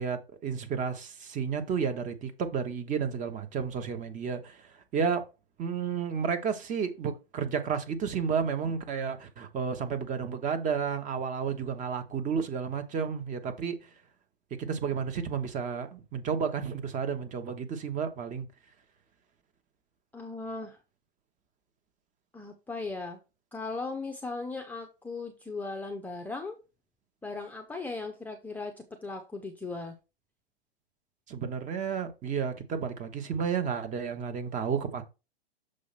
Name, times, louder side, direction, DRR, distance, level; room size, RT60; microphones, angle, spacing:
voice 1, 0.0-5.2 5.6-13.9 14.6-18.5 31.3-35.0, right 6 dB, 25° right, 1.1 m, -32 dB
voice 2, 20.1-20.8 22.3-23.2 23.5-26.6 27.2-30.0, left 3 dB, 5° left, 0.6 m, -37 dB
6.5 x 2.9 x 5.7 m
hypercardioid pair, 120°, 32 cm